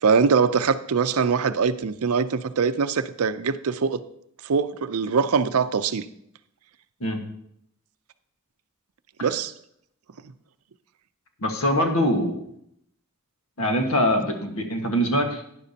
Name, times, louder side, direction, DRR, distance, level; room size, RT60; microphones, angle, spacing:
voice 1, 0.0-4.0 4.4-6.0 9.2-9.5, right 5 dB, 75° right, 12 dB, 0.5 m, -22 dB
voice 2, 11.4-12.4 13.6-15.5, equal, 70° left, 4 dB, 1.5 m, -23 dB
11.5 x 10.0 x 2.8 m, 0.73 s
head